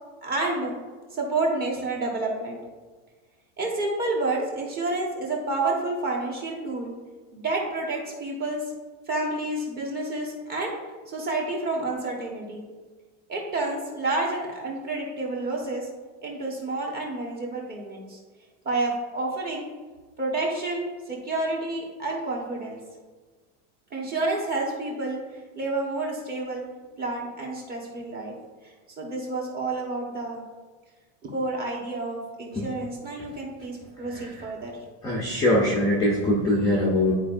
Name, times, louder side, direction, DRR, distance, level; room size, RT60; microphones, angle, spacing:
voice 1, 0.2-0.7 1.1-2.6 3.6-6.9 7.3-8.6 9.1-10.7 11.1-12.6 13.3-15.9 16.2-18.2 18.6-19.7 20.2-22.8 23.9-26.6 27.0-28.3 29.0-30.4 31.2-34.7, right 2 dB, 20° right, -1 dB, 1.2 m, -29 dB
voice 2, 35.0-37.1, left 1 dB, 10° left, -4 dB, 0.5 m, -22 dB
11.0 x 4.6 x 2.5 m, 1.3 s
supercardioid pair, 175°, 43 cm